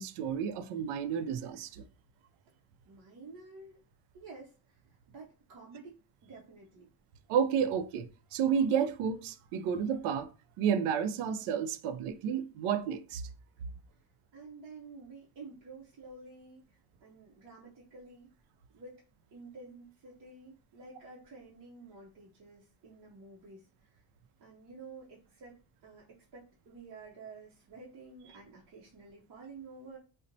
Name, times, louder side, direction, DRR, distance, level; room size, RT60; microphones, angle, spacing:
voice 1, 0.0-1.8 7.3-10.3 10.6-13.2, right 7 dB, 90° right, 0.6 m, -31 dB
voice 2, 2.8-3.8 4.1-6.9 14.3-18.3 18.7-19.0 19.3-24.0 24.4-30.0, right 3 dB, 45° right, 0.7 m, -51 dB
4.2 x 2.1 x 2.6 m
cardioid pair, 145°, 48 cm